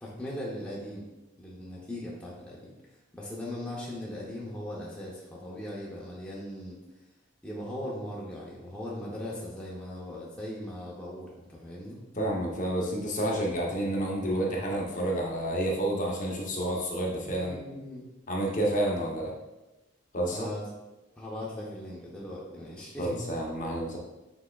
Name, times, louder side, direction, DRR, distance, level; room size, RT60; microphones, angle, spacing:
voice 1, 0.0-1.0 1.4-2.7 3.1-6.8 7.4-12.0 17.2-18.0 20.3-20.6 21.2-23.2, left 1 dB, 5° left, -6 dB, 0.6 m, -39 dB
voice 2, 12.1-17.6 18.3-19.3 20.1-20.5 23.0-24.0, right 1 dB, 40° left, -2 dB, 0.7 m, -29 dB
6.0 x 3.3 x 2.3 m, 1.0 s
head